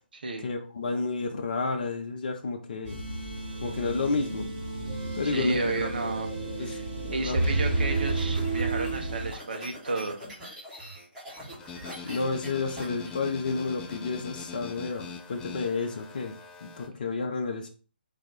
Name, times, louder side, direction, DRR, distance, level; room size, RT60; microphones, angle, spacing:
voice 1, 0.4-3.0 3.6-4.5 5.1-6.1 6.6-6.8 7.0-7.4 7.8-7.9 12.0-16.3 16.6-17.7, left 4 dB, 50° left, 3 dB, 0.6 m, -31 dB
sound 1, 2.8-9.3, right 2 dB, 30° right, 1.5 m, -31 dB
voice 2, 5.2-6.3 6.6-6.8 7.1-10.2, right 3 dB, 55° right, 4 dB, 0.8 m, -32 dB
sound 2, 7.4-13.9, equal, 10° right, 1.2 m, -44 dB
sound 3, 11.6-16.9, left 4 dB, 10° left, 0.3 m, -42 dB
4.0 x 2.5 x 3.7 m, 0.39 s
figure-of-eight pair, 140°, 6 cm